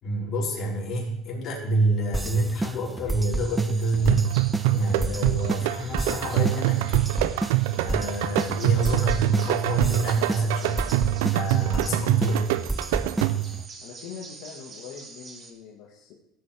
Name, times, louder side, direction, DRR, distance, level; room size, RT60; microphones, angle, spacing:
voice 1, 0.0-4.3 4.7-6.8 7.8-10.8 11.3-12.5, right 2 dB, 45° left, -4 dB, 4.6 m, -27 dB
sound 1, 2.1-13.6, right 2 dB, 10° right, 0.4 m, -31 dB
sound 2, 3.3-15.5, right 3 dB, 30° right, 2.1 m, -46 dB
sound 3, 4.1-13.6, right 16 dB, 85° right, 0.5 m, -25 dB
voice 2, 13.8-16.1, left 7 dB, 70° left, -2 dB, 1.7 m, -42 dB
16.0 x 8.3 x 3.5 m, 0.85 s
supercardioid pair, 115°, 0 cm